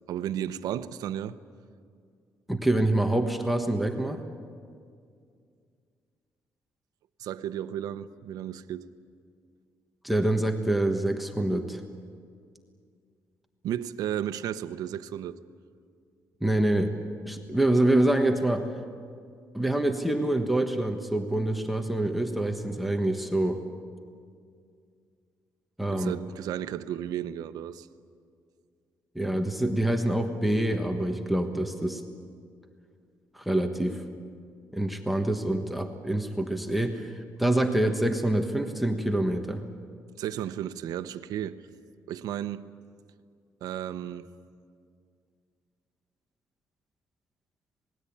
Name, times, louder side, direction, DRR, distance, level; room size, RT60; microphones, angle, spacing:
voice 1, 0.1-1.4 7.2-8.9 13.6-15.4 25.9-27.9 40.2-41.6 42.1-42.7 43.6-44.3, right 10 dB, 85° right, 0.9 m, -33 dB
voice 2, 2.5-4.2 10.0-11.8 16.4-16.9 17.2-18.7 19.5-23.6 25.8-26.1 29.1-32.0 33.3-34.0 34.7-37.1 37.4-39.6, right 1 dB, ahead, 1.3 m, -26 dB
26.5 x 20.0 x 8.7 m
cardioid pair, 135°, 6 cm